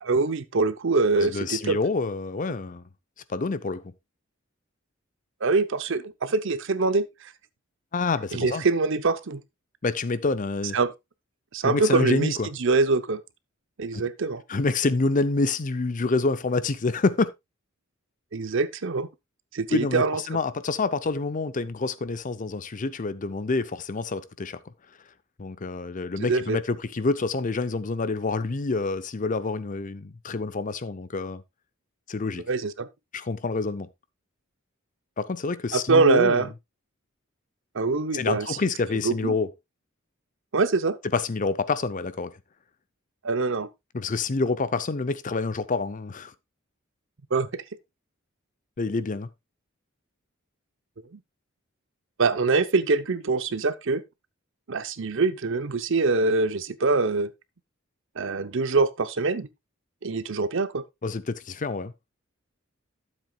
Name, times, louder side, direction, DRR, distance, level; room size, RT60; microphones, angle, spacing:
voice 1, 0.0-1.8 5.4-7.3 8.3-9.4 10.7-10.9 11.5-13.2 13.8-14.4 18.3-19.1 19.5-20.2 26.2-26.6 32.5-32.9 35.7-36.5 37.7-38.6 39.0-39.3 40.5-41.0 43.2-43.7 47.3-47.6 51.1-51.2 52.2-54.0 54.7-57.3 58.2-59.5 60.0-60.8, right 3 dB, 65° right, 0.7 m, -24 dB
voice 2, 1.2-2.9 3.3-3.8 7.9-8.6 9.8-10.8 11.6-12.5 13.9-14.0 14.5-17.3 19.7-24.6 25.4-31.4 32.1-32.4 33.1-33.9 35.2-36.5 38.1-39.5 41.1-42.3 43.9-46.3 48.8-49.3 61.0-61.9, left 3 dB, 40° left, 0.6 m, -27 dB
12.5 x 7.5 x 2.3 m
head